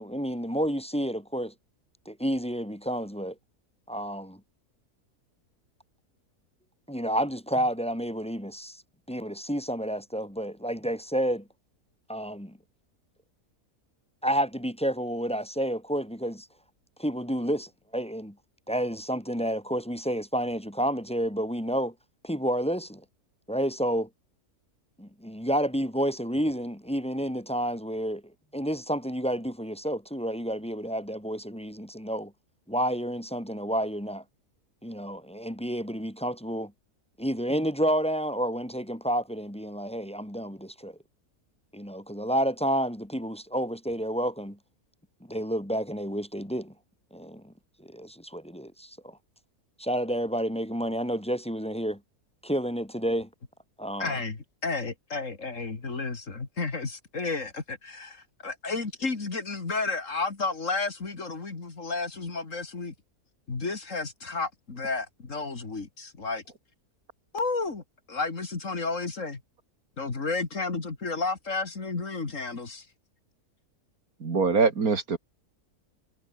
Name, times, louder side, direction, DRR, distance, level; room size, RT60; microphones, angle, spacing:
voice 1, 0.0-1.5 2.1-3.4 3.9-4.4 6.9-8.8 9.1-11.5 12.1-12.6 14.2-16.5 17.0-18.4 18.7-21.9 22.2-23.0 23.5-24.1 25.0-28.2 28.5-32.3 32.7-34.2 34.8-36.7 37.2-41.0 41.7-44.6 45.3-46.7 47.1-47.5 47.8-49.2 49.8-52.0 52.4-53.3 53.8-54.2, equal, 5° left, 1.9 m, -30 dB
voice 2, 54.0-62.9 63.5-66.4 67.3-69.4 70.0-72.9, left 3 dB, 55° left, 3.0 m, -32 dB
voice 3, 74.2-75.2, right 4 dB, 70° right, 2.9 m, -23 dB
omnidirectional pair, 1.6 m